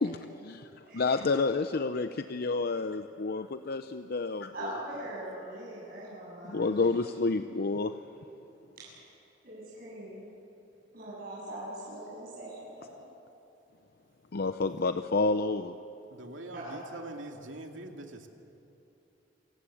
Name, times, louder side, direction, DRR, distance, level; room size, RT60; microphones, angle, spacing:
voice 1, 0.0-0.7 0.9-4.7 6.5-7.9 14.3-15.8, left 3 dB, 55° left, 9 dB, 0.6 m, -29 dB
voice 2, 0.8-1.2 4.5-6.8 8.8-8.9 9.4-10.3 10.9-13.1 16.6-16.8, right 1 dB, 50° right, -8 dB, 7.8 m, -41 dB
voice 3, 16.1-18.3, right 2 dB, 85° right, 3 dB, 2.4 m, -43 dB
27.0 x 18.5 x 8.5 m, 2.9 s
head